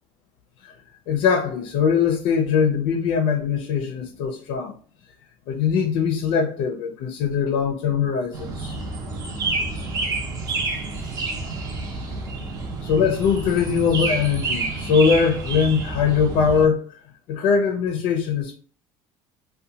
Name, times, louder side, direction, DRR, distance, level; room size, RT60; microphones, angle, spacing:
voice 1, 1.1-4.7 5.5-8.8 12.8-16.9 17.3-18.5, left 6 dB, 70° left, 0.4 m, -21 dB
sound 1, 8.3-16.7, right 3 dB, 40° right, 0.6 m, -29 dB
2.7 x 2.2 x 2.7 m
cardioid pair, 145°, 9 cm